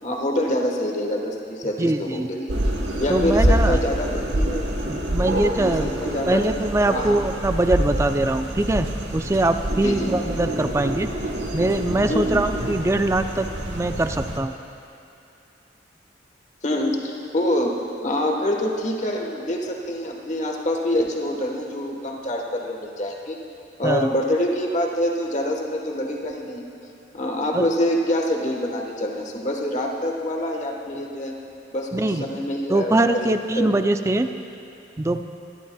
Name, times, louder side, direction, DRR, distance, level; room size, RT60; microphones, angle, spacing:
voice 1, 0.0-2.5 3.0-4.7 5.6-6.5 6.9-7.2 9.8-10.1 12.1-12.4 16.6-17.8 18.0-23.4 23.8-26.6 27.1-31.3 31.7-33.3 33.5-33.7, left 1 dB, 40° left, 0 dB, 1.2 m, -26 dB
voice 2, 1.8-2.3 3.1-3.8 4.9-5.9 6.3-11.1 11.5-14.5 23.8-24.1 27.5-27.7 31.9-32.3 32.7-34.3 35.0-35.2, right 2 dB, 15° right, 8 dB, 0.3 m, -22 dB
sound 1, 2.5-14.4, right 1 dB, 90° right, 1.2 m, -26 dB
23.0 x 11.5 x 2.3 m, 2.7 s
head